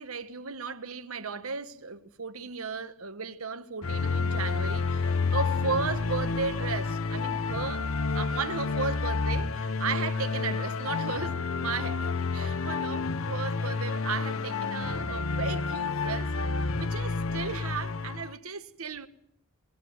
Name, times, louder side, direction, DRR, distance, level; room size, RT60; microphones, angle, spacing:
voice 1, 0.0-7.9 8.1-12.0 12.3-16.3 16.8-19.1, right 4 dB, 90° right, 1.3 m, -35 dB
sound 1, 3.8-18.3, left 4 dB, 70° left, 0.8 m, -30 dB
21.5 x 19.0 x 9.3 m
head